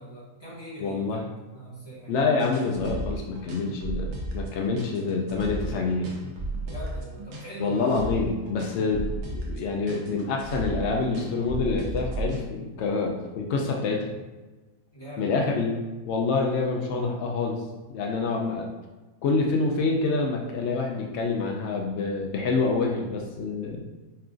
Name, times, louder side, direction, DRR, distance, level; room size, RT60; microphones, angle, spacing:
voice 1, 0.0-2.2 6.6-7.9 14.9-15.6, right 1 dB, 20° left, -8 dB, 1.0 m, -41 dB
voice 2, 0.8-1.2 2.1-6.1 7.6-9.0 9.3-14.0 15.2-15.7 16.0-17.6 17.9-18.7 19.2-23.8, left 4 dB, 80° left, 0 dB, 0.6 m, -27 dB
sound 1, 2.4-12.5, right 1 dB, 80° right, 1.3 m, -34 dB
5.5 x 2.4 x 2.5 m, 1.2 s
omnidirectional pair, 1.7 m